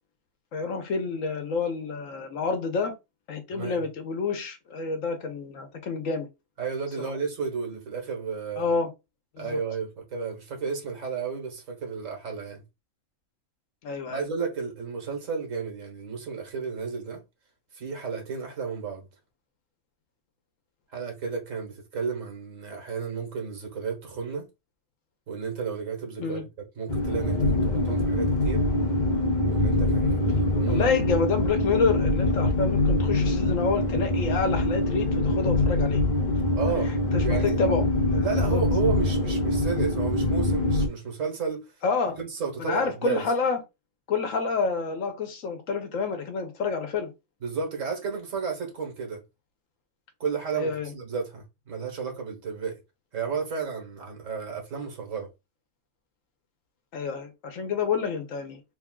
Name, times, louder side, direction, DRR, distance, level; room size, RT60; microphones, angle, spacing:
voice 1, 0.5-2.9 3.3-6.3 7.0-7.1 8.6-8.9 9.3-9.6 13.8-14.2 26.2-26.4 30.7-36.0 36.7-38.6 41.8-42.2 42.6-43.6 44.1-47.1 50.5-50.9 56.9-58.6, left 4 dB, 85° left, 1.3 m, -28 dB
voice 2, 3.5-3.8 6.6-8.7 9.4-12.6 14.1-17.2 17.7-19.1 20.9-24.5 25.3-26.5 26.8-28.7 29.4-31.1 36.6-37.0 37.2-37.6 38.2-41.7 42.2-43.3 47.4-49.2 50.2-52.8 53.1-55.3, right 5 dB, 85° right, 1.7 m, -32 dB
sound 1, 26.9-40.9, left 2 dB, 40° left, 0.9 m, -24 dB
3.6 x 2.3 x 3.7 m
omnidirectional pair, 1.3 m